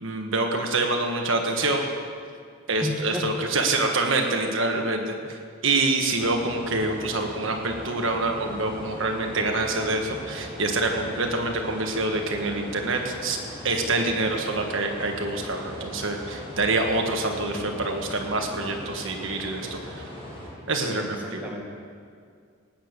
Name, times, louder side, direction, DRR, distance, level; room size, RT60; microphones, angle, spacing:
voice 1, 0.0-1.9 2.7-5.1 5.6-19.8 20.7-21.5, right 2 dB, 60° right, 3 dB, 1.5 m, -26 dB
voice 2, 2.8-3.4 17.4-17.8 20.7-21.6, equal, 5° right, -1 dB, 1.7 m, -33 dB
sound 1, 6.2-20.5, left 1 dB, 25° left, 4.4 m, -39 dB
18.5 x 9.0 x 6.7 m, 2.2 s
head